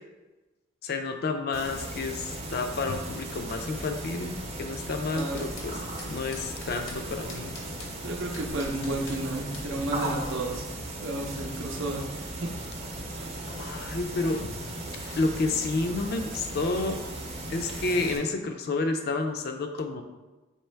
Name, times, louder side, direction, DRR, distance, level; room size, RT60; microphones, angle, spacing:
voice 1, 0.8-5.8 6.1-7.6 13.5-14.6 14.9-17.0 17.5-20.0, left 3 dB, 50° left, 6 dB, 0.4 m, -30 dB
sound 1, 1.5-18.2, right 1 dB, 30° right, 0.6 m, -37 dB
sound 2, 4.7-5.7 6.0-7.0 7.3-7.9 8.3-9.2 9.5-9.7, left 3 dB, 85° left, 0.8 m, -44 dB
voice 2, 5.1-5.4 8.0-10.6 11.0-12.0 12.4-12.5, right 2 dB, 75° right, 1 dB, 0.7 m, -32 dB
4.4 x 3.0 x 3.3 m, 1.1 s
head